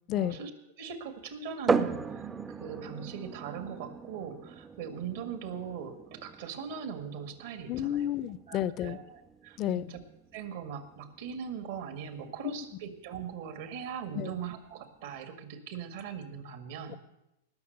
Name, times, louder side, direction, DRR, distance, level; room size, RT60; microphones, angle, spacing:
voice 1, 0.1-0.5 0.8-8.1 8.5-10.0 10.3-17.0, right 7 dB, 65° right, 9 dB, 2.0 m, -40 dB
sound 1, 1.7-15.2, right 4 dB, 15° right, 0.6 m, -38 dB
voice 2, 7.7-9.0 9.6-9.8 14.1-14.3 16.9-17.0, left 11 dB, 40° left, 18 dB, 0.6 m, -31 dB
18.5 x 6.4 x 8.1 m, 0.91 s
hypercardioid pair, 110°, 0 cm